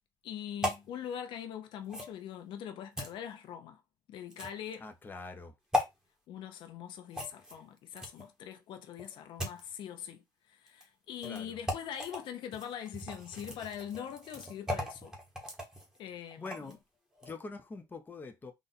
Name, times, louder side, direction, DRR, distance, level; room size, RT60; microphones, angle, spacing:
voice 1, 0.2-3.8 4.1-4.9 6.3-15.2 16.0-16.8, left 9 dB, 75° left, 0.7 m, -42 dB
sound 1, 0.6-0.9 1.9-2.1 3.0-3.1 4.3-4.7 5.7-5.9 7.1-8.3 9.0-9.6 10.7-10.8 11.2-11.4 11.7-12.2 12.5-16.8 17.1-17.3, left 1 dB, 10° right, 1.4 m, -37 dB
voice 2, 4.8-5.5 11.2-11.6 16.4-16.8 17.2-18.5, left 3 dB, 25° left, 0.8 m, -44 dB
4.0 x 2.4 x 4.1 m
cardioid pair, 110°, 8 cm